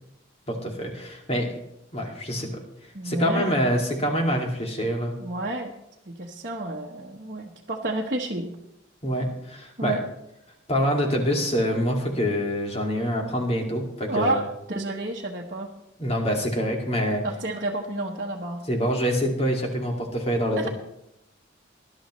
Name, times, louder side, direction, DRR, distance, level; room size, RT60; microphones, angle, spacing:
voice 1, 0.5-1.6 1.9-2.5 3.0-5.1 9.0-9.9 10.7-14.4 16.0-17.2 18.7-20.7, equal, 35° left, 1 dB, 2.3 m, -25 dB
voice 2, 2.9-3.6 5.2-5.7 6.1-8.5 9.8-10.0 14.1-15.7 17.2-18.6 20.6-20.7, right 2 dB, 45° right, -3 dB, 1.1 m, -30 dB
19.5 x 12.0 x 3.1 m, 0.83 s
head